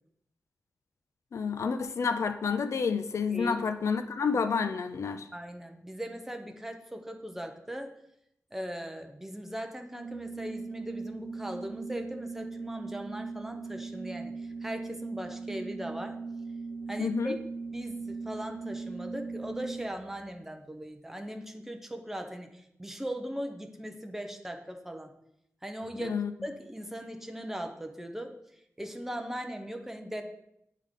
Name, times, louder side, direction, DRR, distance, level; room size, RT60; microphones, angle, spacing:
voice 1, 1.3-5.3 17.0-17.4 26.0-26.3, left 5 dB, 60° left, 0.4 m, -29 dB
voice 2, 5.3-7.9 8.5-14.3 14.6-16.2 16.9-17.3 17.7-25.1 25.6-26.1 26.4-28.4 28.8-30.2, equal, 5° right, 0.7 m, -39 dB
Organ, 9.9-20.2, right 4 dB, 55° right, 0.5 m, -39 dB
9.4 x 3.6 x 3.7 m
wide cardioid pair, 95°, 5 cm